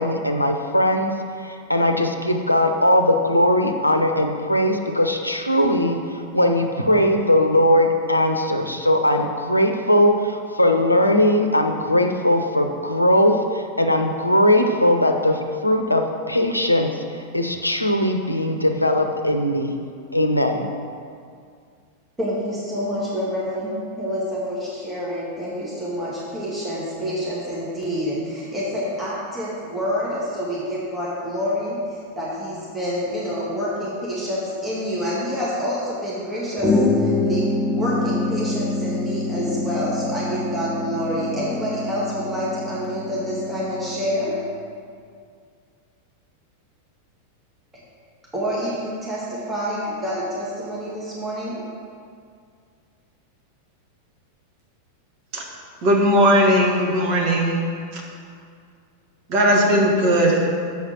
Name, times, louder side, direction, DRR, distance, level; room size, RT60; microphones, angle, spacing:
voice 1, 0.0-19.7 20.1-20.6, left 1 dB, 85° left, 5 dB, 0.6 m, -19 dB
voice 2, 22.2-44.4 48.3-51.6, equal, 10° right, -8 dB, 2.1 m, -27 dB
sound 1, 36.6-44.3, left 2 dB, 10° left, 1.2 m, -25 dB
voice 3, 55.8-57.6 59.3-60.4, equal, 45° right, -1 dB, 1.6 m, -17 dB
7.3 x 5.7 x 6.0 m, 2.2 s
figure-of-eight pair, 90°, 0 cm